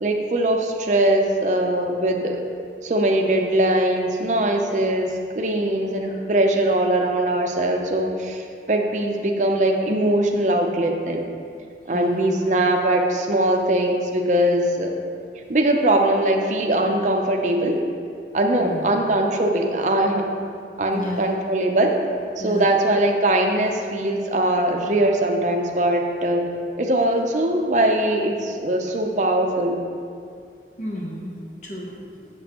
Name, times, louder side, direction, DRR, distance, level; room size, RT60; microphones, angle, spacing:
voice 1, 0.0-2.4 2.8-11.2 11.9-14.9 15.5-17.8 18.3-20.3 20.8-22.0 22.4-26.4 26.8-29.8, right 1 dB, 40° right, 2 dB, 0.6 m, -21 dB
voice 2, 11.9-12.4 18.6-18.9 20.9-21.3 22.4-22.7 28.9-29.0 30.8-32.3, left 1 dB, 45° left, -3 dB, 0.8 m, -33 dB
7.3 x 7.2 x 2.9 m, 2.3 s
head